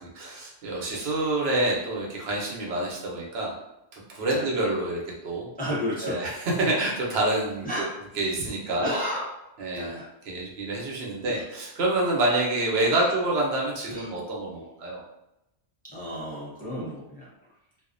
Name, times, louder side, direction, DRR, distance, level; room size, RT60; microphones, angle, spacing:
voice 1, 0.0-3.5 3.9-5.5 6.0-7.7 8.1-8.9 9.6-9.9 10.3-15.0, right 2 dB, 75° right, -2 dB, 0.9 m, -27 dB
voice 2, 5.6-6.2 7.6-7.9 8.7-9.3 9.7-10.1 11.3-11.4 13.0-13.1 13.9-14.1 15.8-17.3, equal, 10° left, -8 dB, 0.5 m, -32 dB
2.4 x 2.0 x 2.5 m, 0.89 s
omnidirectional pair, 1.1 m